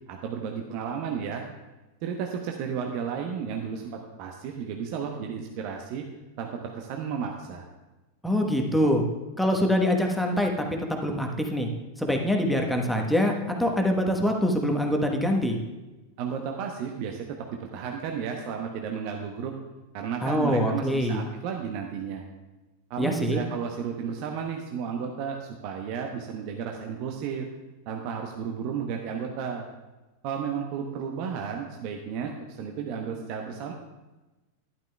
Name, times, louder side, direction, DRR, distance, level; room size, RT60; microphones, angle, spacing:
voice 1, 0.1-1.4 2.0-6.1 6.4-7.7 16.2-19.5 19.9-22.2 22.9-27.5 27.9-29.7 30.2-33.7, right 7 dB, 45° right, 2 dB, 0.9 m, -33 dB
voice 2, 8.2-9.0 9.4-10.5 10.9-11.7 12.0-13.3 13.6-15.6 20.2-21.2 23.0-23.4, equal, ahead, 2 dB, 1.2 m, -24 dB
12.0 x 11.0 x 2.3 m, 1.1 s
figure-of-eight pair, 90°, 0 cm